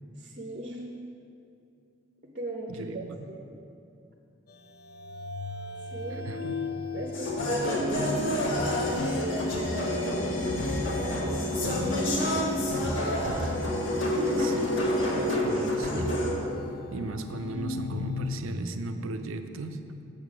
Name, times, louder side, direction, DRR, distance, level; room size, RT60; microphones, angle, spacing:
voice 1, 0.2-0.8 2.3-3.5 5.9-6.3 6.9-8.4 9.1-10.7 11.0-12.3 14.2-14.5, right 1 dB, 40° right, 1 dB, 0.6 m, -36 dB
voice 2, 2.7-3.3 6.2-6.7 14.4-16.2 16.9-20.0, right 2 dB, 85° right, 8 dB, 0.5 m, -37 dB
sound 1, 4.5-18.4, left 3 dB, 45° left, 0.4 m, -38 dB
sound 2, 7.1-16.3, left 1 dB, 70° left, 1.3 m, -28 dB
7.9 x 6.5 x 5.0 m, 2.6 s
head